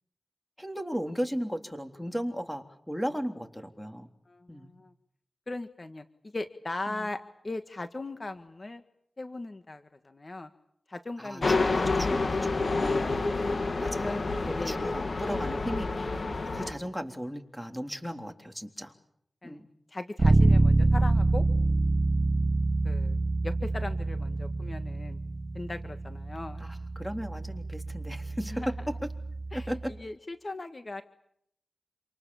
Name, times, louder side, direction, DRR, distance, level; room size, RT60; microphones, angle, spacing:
voice 1, 0.6-4.1 4.5-4.7 6.9-7.1 11.2-13.3 13.8-14.1 14.5-15.9 16.5-18.9 19.4-19.7 26.6-28.9 29.5-29.9, equal, 5° left, 6 dB, 3.6 m, -36 dB
voice 2, 4.3-4.9 5.5-7.2 7.4-8.8 9.2-10.5 10.9-11.9 12.3-12.8 14.0-14.3 14.6-14.8 19.4-19.6 19.9-21.4 22.8-23.2 23.4-25.2 25.5-26.6 28.5-28.7 29.5-29.7 30.0-31.0, left 2 dB, 45° left, 8 dB, 1.8 m, -38 dB
sound 1, 11.4-16.7, left 3 dB, 60° left, 2.5 m, -28 dB
Bass guitar, 20.2-30.0, right 2 dB, 45° right, 3.1 m, -27 dB
28.0 x 27.0 x 7.3 m, 0.72 s
cardioid pair, 50°, 0 cm